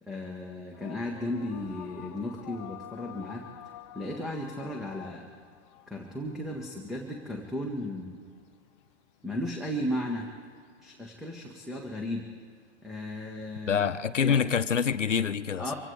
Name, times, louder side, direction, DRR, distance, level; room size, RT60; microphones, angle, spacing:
voice 1, 0.0-3.4 3.9-5.3 5.9-8.2 9.2-10.3 10.8-12.2 12.8-13.9 14.2-14.4 15.6-15.7, left 1 dB, ahead, 1 dB, 1.2 m, -35 dB
sound 1, 0.7-13.5, left 12 dB, 25° left, 0.5 m, -50 dB
voice 2, 13.7-15.7, left 7 dB, 85° left, 13 dB, 0.8 m, -26 dB
25.0 x 17.0 x 3.3 m, 2.1 s
figure-of-eight pair, 115°, 36 cm